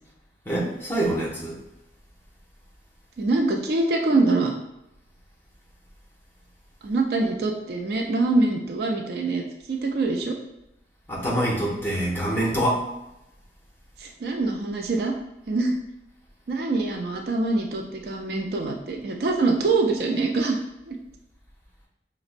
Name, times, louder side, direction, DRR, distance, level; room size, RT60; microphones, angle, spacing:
voice 1, 0.5-1.5 11.1-12.8, right 1 dB, 10° left, -5 dB, 0.7 m, -25 dB
voice 2, 3.2-4.5 6.8-10.4 14.0-15.1 15.5-15.7 16.5-20.6 20.9-21.0, right 3 dB, 60° right, 2 dB, 0.4 m, -24 dB
5.1 x 2.0 x 2.5 m, 0.89 s
head